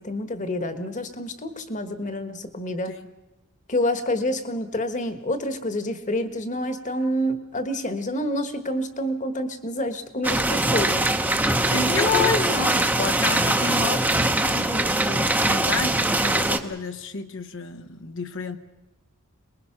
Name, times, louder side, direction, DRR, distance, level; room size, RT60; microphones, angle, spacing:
voice 1, 0.0-2.9 3.7-11.1 11.9-12.4 14.5-15.0, left 1 dB, 35° left, 10 dB, 1.4 m, -27 dB
sound 1, 10.2-16.6, right 1 dB, 10° right, 0.9 m, -22 dB
voice 2, 11.6-14.6 15.0-18.6, left 4 dB, 60° left, 7 dB, 1.0 m, -31 dB
23.5 x 21.0 x 5.9 m, 1.0 s
head